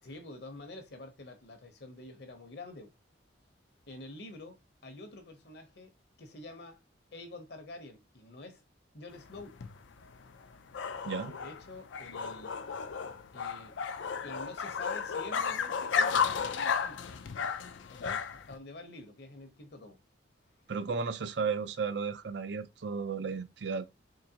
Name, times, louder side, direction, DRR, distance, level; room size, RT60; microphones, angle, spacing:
voice 1, 0.0-2.9 3.9-4.6 4.8-5.9 6.2-6.8 7.1-8.6 8.9-9.6 11.2-12.6 13.3-13.7 14.2-17.1 17.9-20.0, left 2 dB, 55° left, 0.8 m, -47 dB
sound 1, 9.1-18.6, left 6 dB, 75° left, 0.5 m, -34 dB
voice 2, 20.7-23.9, right 5 dB, 65° right, 0.5 m, -34 dB
3.8 x 3.0 x 2.8 m
head